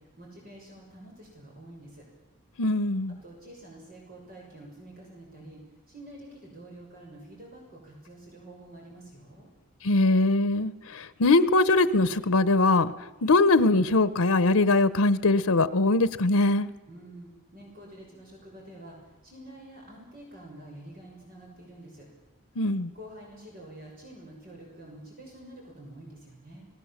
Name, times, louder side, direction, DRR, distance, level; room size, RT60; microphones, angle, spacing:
voice 1, 0.0-2.0 3.2-5.6 5.9-9.5 16.9-22.1 22.9-26.7, right 1 dB, 40° right, -1 dB, 6.3 m, -47 dB
voice 2, 2.6-3.1 9.8-12.9 13.2-16.7 22.6-22.9, left 2 dB, 90° left, 15 dB, 0.9 m, -22 dB
28.5 x 19.5 x 7.4 m, 1.1 s
head